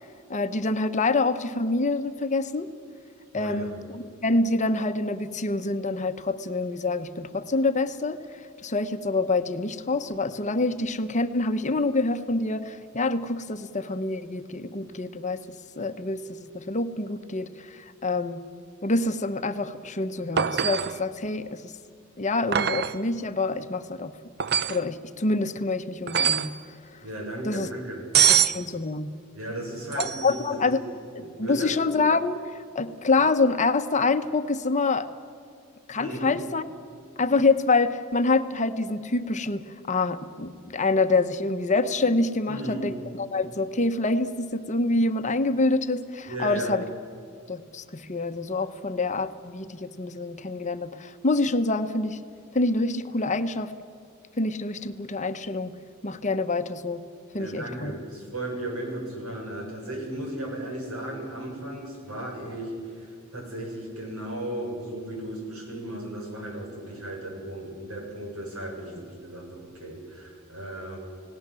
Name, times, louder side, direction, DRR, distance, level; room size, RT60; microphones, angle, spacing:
voice 1, 0.3-2.7 3.3-18.4 18.8-21.7 22.2-24.1 24.7-27.0 27.4-27.7 28.3-29.1 30.0-30.8 31.1-35.1 35.9-36.6 37.2-46.8 47.5-52.2 52.5-53.7 54.4-55.8 56.0-57.0 57.3-57.9, left 3 dB, 35° left, 10 dB, 1.0 m, -26 dB
voice 2, 3.3-3.7 27.0-28.3 29.3-30.4 30.7-30.8 31.2-31.7 36.0-36.4 42.5-42.9 46.3-46.7 57.3-71.0, right 1 dB, 90° right, 1 dB, 7.1 m, -35 dB
sound 1, 20.4-21.0 22.5-23.0 24.4-24.8 26.1-26.6 28.1-28.6 29.9-30.4 33.2-33.3, right 8 dB, 50° right, 0.7 m, -23 dB
29.5 x 18.0 x 7.7 m, 2.3 s
head